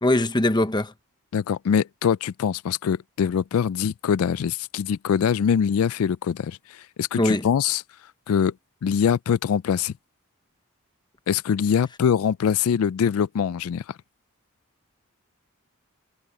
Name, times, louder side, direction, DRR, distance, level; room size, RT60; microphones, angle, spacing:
voice 1, 0.0-0.9 7.2-7.5, left 1 dB, 20° left, 0.9 m, -21 dB
voice 2, 1.3-7.8 8.3-8.5 8.8-9.9 11.3-14.0, left 7 dB, 80° left, 0.3 m, -23 dB
head